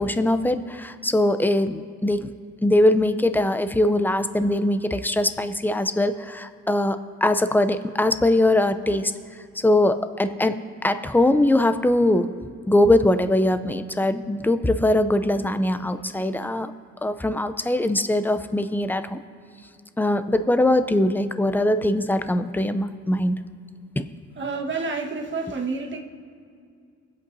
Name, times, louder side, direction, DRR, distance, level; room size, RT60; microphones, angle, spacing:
voice 1, 0.0-2.3 2.6-9.1 9.6-10.6 10.8-12.3 12.7-16.7 17.0-19.2 20.0-23.4 24.0-24.1, left 1 dB, 5° left, 11 dB, 0.5 m, -21 dB
voice 2, 24.4-26.0, right 4 dB, 40° right, 1 dB, 1.5 m, -29 dB
24.5 x 8.4 x 2.7 m, 2.3 s
cardioid pair, 90°, 30 cm